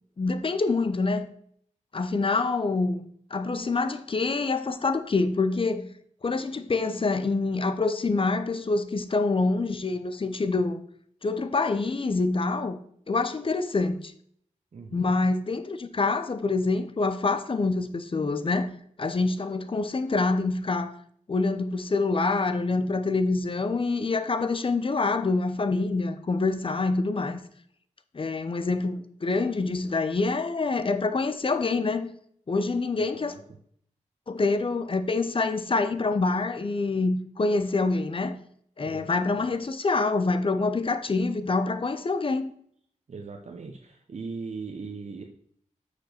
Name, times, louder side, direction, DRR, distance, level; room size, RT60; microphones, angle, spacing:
voice 1, 0.2-1.3 1.9-3.0 3.3-5.9 6.2-10.8 11.2-12.8 13.1-14.1 14.9-18.7 19.0-21.0 21.3-27.4 28.1-32.1 32.5-33.3 34.3-38.4 38.8-42.5, left 3 dB, 45° left, 0.8 m, -26 dB
voice 2, 14.7-15.2 32.9-33.4 38.8-39.4 43.1-45.2, right 4 dB, 60° right, 0.9 m, -39 dB
6.6 x 5.1 x 6.5 m
wide cardioid pair, 85°, 13 cm